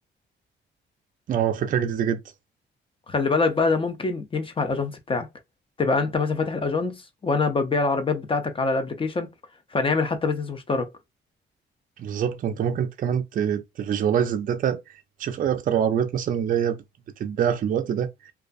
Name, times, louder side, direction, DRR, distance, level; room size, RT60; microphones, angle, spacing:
voice 1, 1.3-2.2 12.0-14.8 15.2-16.8 17.2-18.1, right 8 dB, 45° right, 0.4 m, -24 dB
voice 2, 3.1-5.3 5.8-9.3 9.7-10.9, left 4 dB, 25° left, 0.5 m, -24 dB
2.4 x 2.3 x 2.3 m
cardioid pair, 90°, 20 cm